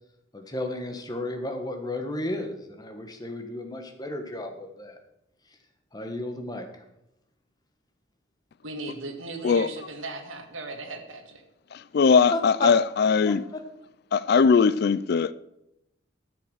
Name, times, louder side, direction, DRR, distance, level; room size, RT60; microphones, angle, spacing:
voice 1, 0.3-5.0 5.9-6.7 12.3-12.7 13.3-13.6, left 1 dB, 20° left, 1.3 m, -33 dB
voice 2, 8.6-11.4, right 3 dB, 75° right, 1.7 m, -37 dB
voice 3, 11.7-13.4 14.1-15.3, left 5 dB, 50° left, 0.4 m, -20 dB
12.0 x 6.9 x 6.4 m
head